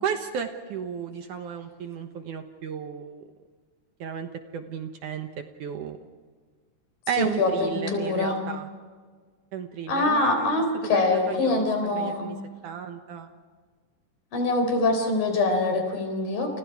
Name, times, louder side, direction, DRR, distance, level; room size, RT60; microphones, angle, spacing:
voice 1, 0.0-3.2 4.0-5.3 5.6-6.0 7.1-8.7 9.5-10.6 10.9-11.7 11.9-12.4 12.6-13.3, right 7 dB, 65° right, 6 dB, 2.4 m, -33 dB
voice 2, 7.2-8.4 9.9-12.3 14.3-16.6, left 2 dB, 65° left, 6 dB, 5.6 m, -24 dB
30.0 x 29.0 x 4.8 m, 1.5 s
omnidirectional pair, 4.4 m